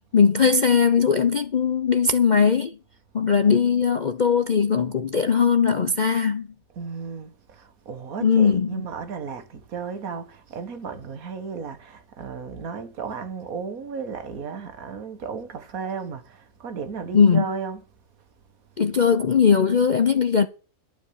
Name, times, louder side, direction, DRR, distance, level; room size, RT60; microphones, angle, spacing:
voice 1, 0.1-2.8 3.1-6.5 8.2-8.8 17.1-17.4 18.8-20.5, left 6 dB, 40° left, 0.7 m, -19 dB
voice 2, 6.7-17.9, right 5 dB, 80° right, 1.8 m, -34 dB
12.0 x 5.2 x 8.4 m
omnidirectional pair, 1.5 m